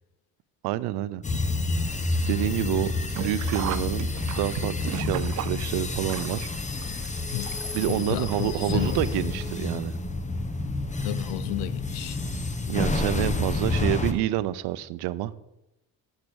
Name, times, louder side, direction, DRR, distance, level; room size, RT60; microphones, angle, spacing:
voice 1, 0.6-1.2 2.3-4.1 4.4-6.5 7.7-10.0 12.7-15.3, right 13 dB, 85° right, 0.6 m, -28 dB
sound 1, 1.2-14.1, left 2 dB, 20° left, 1.0 m, -29 dB
Sink (filling or washing), 3.0-8.0 8.3-8.4 9.4-9.5 9.8-9.9, right 13 dB, 50° right, 0.4 m, -36 dB
voice 2, 7.9-9.3 11.0-12.2, left 15 dB, 90° left, 0.6 m, -33 dB
8.5 x 6.5 x 6.2 m
cardioid pair, 90°, 38 cm